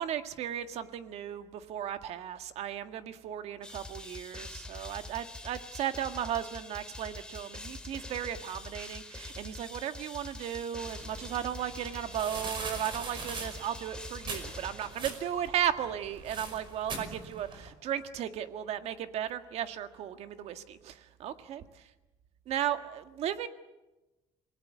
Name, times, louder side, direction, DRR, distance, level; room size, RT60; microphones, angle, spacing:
voice 1, 0.0-21.6 22.5-23.5, right 10 dB, 65° right, 9 dB, 1.7 m, -35 dB
sound 1, 3.6-15.5, left 2 dB, 10° left, 2.6 m, -45 dB
sound 2, 10.8-17.7, right 4 dB, 45° right, 5.5 m, -42 dB
27.5 x 19.5 x 8.5 m, 1.1 s
cardioid pair, 120°, 12 cm